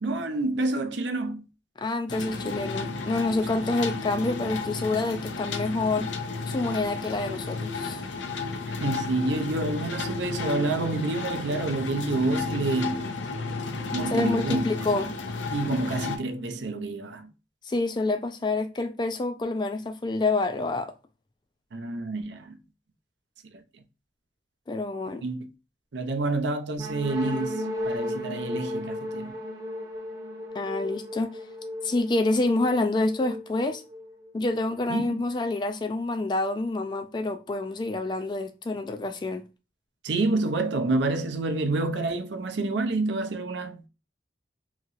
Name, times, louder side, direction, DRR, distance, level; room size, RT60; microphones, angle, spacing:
voice 1, 0.0-1.5 8.8-13.0 13.9-14.7 15.5-17.3 21.7-22.6 23.5-23.6 25.2-25.5 25.9-29.4 34.9-35.2 40.0-43.9, right 2 dB, 70° right, 0.5 m, -28 dB
voice 2, 1.8-6.1 6.5-8.0 14.1-15.1 17.6-20.9 24.7-25.3 30.5-31.4 31.8-33.8 34.3-39.4, left 2 dB, 25° left, 0.3 m, -27 dB
sound 1, 2.1-16.2, left 4 dB, 80° left, 0.5 m, -33 dB
sound 2, 26.8-34.5, left 1 dB, 20° right, 0.7 m, -35 dB
2.9 x 2.8 x 2.5 m
head